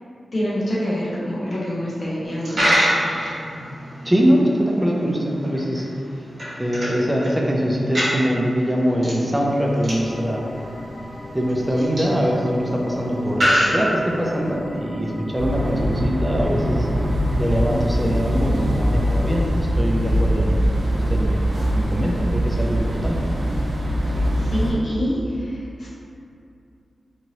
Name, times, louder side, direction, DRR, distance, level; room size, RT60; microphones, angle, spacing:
voice 1, 0.3-2.9 24.1-25.9, equal, 55° left, -8 dB, 0.8 m, -26 dB
Coin (dropping), 2.3-14.5, equal, 60° right, 1.2 m, -27 dB
voice 2, 4.0-5.9 6.6-10.4 11.3-16.9 17.4-20.7 21.1-21.4 21.7-23.2, equal, 10° right, -2 dB, 0.4 m, -22 dB
sound 1, 9.4-19.4, left 1 dB, 45° right, 0.8 m, -39 dB
sound 2, 15.4-24.7, equal, 80° right, 0.5 m, -22 dB
3.0 x 2.7 x 2.7 m, 2.5 s
wide cardioid pair, 85°, 0 cm